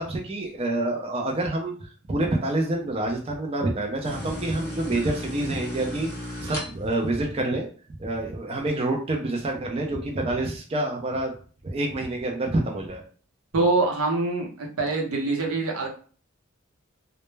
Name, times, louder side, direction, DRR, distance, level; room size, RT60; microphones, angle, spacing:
voice 1, 0.0-6.1 6.4-7.7 8.0-11.3 11.6-13.0, right 2 dB, 30° right, 1 dB, 0.4 m, -27 dB
sound 1, 4.0-7.1, left 1 dB, 15° left, 0.7 m, -35 dB
voice 2, 13.5-15.9, right 3 dB, 90° right, 1 dB, 0.7 m, -24 dB
2.1 x 2.0 x 3.2 m, 0.42 s
head